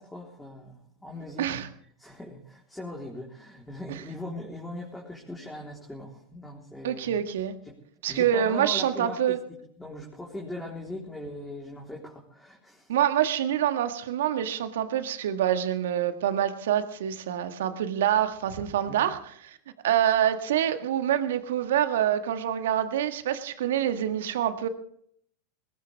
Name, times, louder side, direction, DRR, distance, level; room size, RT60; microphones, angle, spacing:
voice 1, 0.0-1.5 2.0-7.2 7.6-7.8 8.1-12.9 18.9-19.0, left 1 dB, 5° left, -3 dB, 3.8 m, -40 dB
voice 2, 1.4-1.7 6.8-7.5 8.0-9.4 12.9-19.6 19.8-24.7, right 10 dB, 70° right, 8 dB, 1.7 m, -26 dB
20.5 x 18.5 x 3.5 m, 0.66 s
hypercardioid pair, 95°, 0 cm